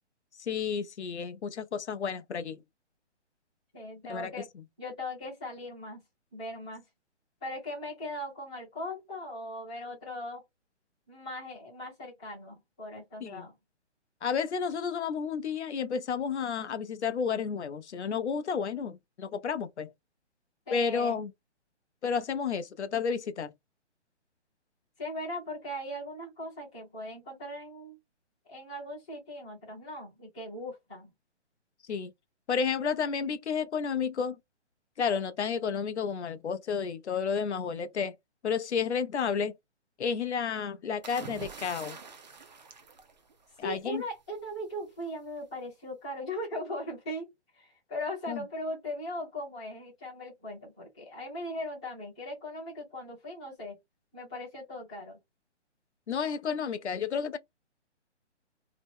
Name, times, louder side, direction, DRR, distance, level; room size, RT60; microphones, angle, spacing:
voice 1, 0.4-2.6 4.1-4.3 13.2-13.5 14.2-19.9 20.7-21.3 22.0-23.5 31.9-32.1 32.5-34.4 35.0-38.1 38.4-39.5 40.0-42.0 43.6-44.0 48.3-48.4 56.1-57.4, left 6 dB, 70° left, 0.6 m, -31 dB
voice 2, 3.7-4.5 4.8-6.0 6.3-6.8 7.4-10.4 11.1-13.5 20.7-21.2 25.0-28.0 28.5-31.1 43.6-47.3 47.5-53.8 54.1-55.2, left 1 dB, 5° left, 0.6 m, -39 dB
sound 1, 41.0-43.8 45.0-45.3, right 4 dB, 40° right, 0.5 m, -46 dB
2.8 x 2.0 x 3.4 m
hypercardioid pair, 170°, 35 cm